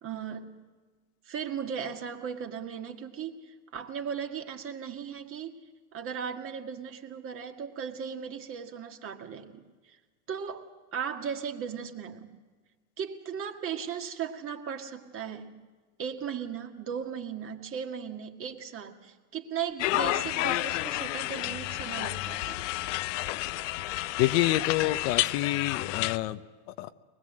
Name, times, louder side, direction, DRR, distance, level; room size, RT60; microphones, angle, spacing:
voice 1, 0.0-0.6 1.3-5.6 5.9-10.0 10.3-12.4 13.0-15.6 16.0-22.7, right 7 dB, 35° right, 4 dB, 2.0 m, -37 dB
sound 1, 19.8-26.2, left 16 dB, 75° left, 0.6 m, -30 dB
voice 2, 24.2-26.9, left 15 dB, 60° left, 12 dB, 0.9 m, -28 dB
23.5 x 20.5 x 7.6 m, 1.4 s
supercardioid pair, 115°, 37 cm